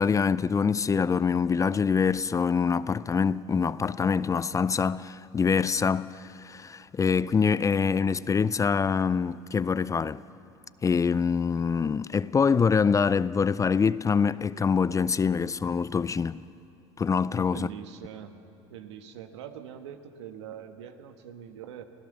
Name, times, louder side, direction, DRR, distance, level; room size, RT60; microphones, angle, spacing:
voice 1, 0.0-10.2 10.8-16.4 17.0-17.7, left 6 dB, 20° left, 0.4 m, -25 dB
voice 2, 17.5-18.3 18.7-21.8, right 9 dB, 80° right, 1.4 m, -43 dB
24.5 x 16.0 x 6.7 m
hypercardioid pair, 80°, 14 cm